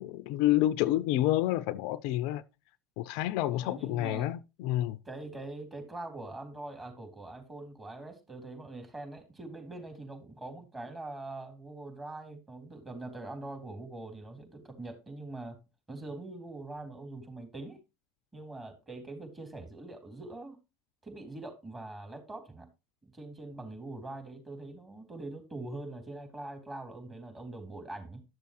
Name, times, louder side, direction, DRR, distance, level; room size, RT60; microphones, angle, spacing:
voice 1, 0.0-2.4 3.0-5.0, left 14 dB, 60° left, 0.4 m, -29 dB
voice 2, 3.5-4.3 5.0-15.6 15.9-17.8 18.3-20.6 21.0-22.7 23.0-28.2, right 2 dB, 20° right, 3.8 m, -43 dB
12.0 x 6.8 x 3.0 m
hypercardioid pair, 75°, 0 cm